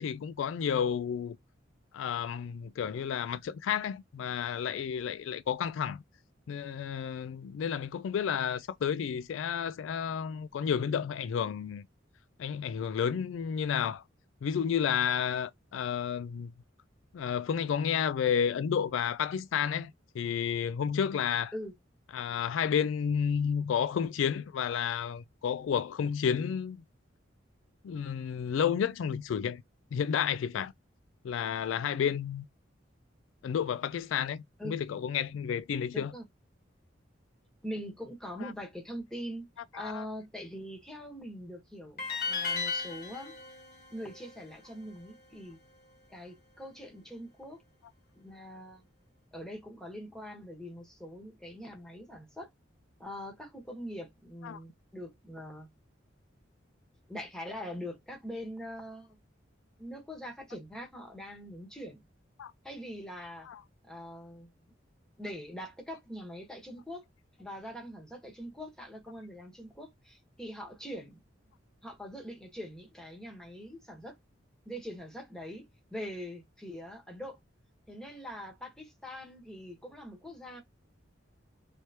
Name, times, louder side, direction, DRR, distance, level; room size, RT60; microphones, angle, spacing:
voice 1, 0.0-1.4 1.9-6.0 6.5-11.8 12.4-14.0 14.4-16.5 17.1-21.5 22.1-26.8 27.8-29.6 29.9-30.7 31.2-32.4 33.4-36.1 38.4-38.5 39.7-40.1 54.4-54.6 62.4-62.5 63.5-63.6, left 7 dB, 90° left, 0.3 m, -31 dB
voice 2, 35.9-36.2 37.6-39.5 39.7-43.4 43.9-45.6 46.1-47.6 48.1-48.9 49.3-52.5 53.0-55.7 57.1-59.2 59.8-62.0 62.6-63.5 63.8-64.7 65.2-67.1 67.4-71.2 71.8-74.2 74.6-75.7 75.9-77.4 77.9-80.6, equal, 5° left, 1.1 m, -43 dB
sound 1, 42.0-45.1, left 5 dB, 50° left, 1.4 m, -36 dB
3.3 x 3.1 x 2.8 m
head